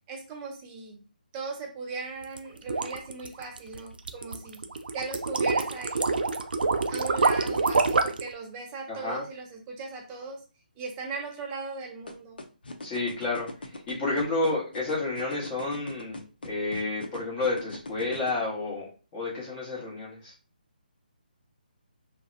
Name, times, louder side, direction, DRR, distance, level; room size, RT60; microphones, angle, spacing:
voice 1, 0.1-1.0 1.3-4.6 4.9-6.2 6.9-10.4 10.8-12.4, right 4 dB, 20° right, 2 dB, 0.5 m, -38 dB
sound 1, 2.2-8.3, right 4 dB, 70° right, 0.3 m, -26 dB
voice 2, 8.9-9.2 12.8-20.3, left 2 dB, 20° left, -5 dB, 1.0 m, -30 dB
sound 2, 12.1-18.3, left 2 dB, 70° left, 0.5 m, -39 dB
2.6 x 2.1 x 2.5 m, 0.36 s
figure-of-eight pair, 150°, 5 cm